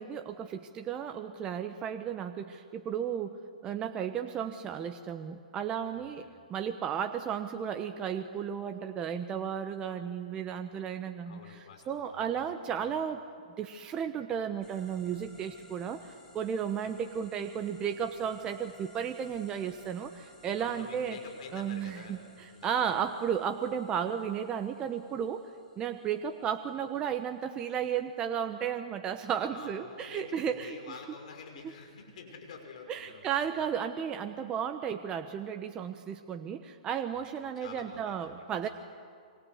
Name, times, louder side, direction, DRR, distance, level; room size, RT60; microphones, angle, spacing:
voice 1, 0.0-6.2 6.5-11.4 11.9-13.2 13.6-21.2 21.5-22.2 22.6-25.4 25.8-30.8 32.9-38.7, right 8 dB, 20° right, 7 dB, 1.1 m, -34 dB
voice 2, 5.9-6.3 11.2-13.0 20.5-23.0 29.4-33.7 37.1-37.2 37.6-38.6, left 5 dB, 60° left, 4 dB, 5.9 m, -49 dB
sound 1, 14.6-28.8, left 2 dB, 15° left, 5.1 m, -59 dB
28.0 x 24.5 x 8.1 m, 2.2 s
hypercardioid pair, 135°, 4 cm